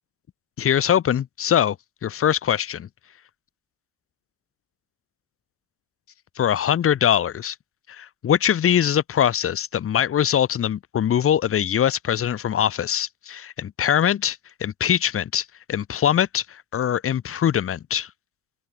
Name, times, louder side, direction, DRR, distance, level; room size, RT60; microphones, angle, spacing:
voice 1, 0.6-1.8 2.0-2.9 6.4-7.5 7.9-18.1, left 9 dB, 35° left, 1.2 m, -22 dB
open air
supercardioid pair, 85°, 36 cm